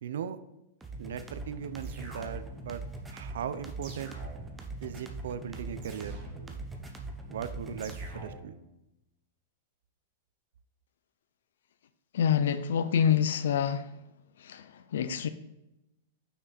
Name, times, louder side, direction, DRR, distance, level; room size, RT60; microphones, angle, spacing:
voice 1, 0.0-0.4 1.0-2.8 3.1-4.1 4.8-6.2 7.2-8.6, right 8 dB, 75° right, 0.5 m, -38 dB
sound 1, 0.8-8.4, right 2 dB, 10° right, 0.7 m, -42 dB
sound 2, 1.8-2.7 3.8-4.7 5.8-6.7 7.8-8.7, right 2 dB, 40° right, 1.6 m, -48 dB
voice 2, 12.1-13.9 14.4-15.3, left 8 dB, 75° left, 0.4 m, -27 dB
6.0 x 5.9 x 4.0 m
supercardioid pair, 160°, 0 cm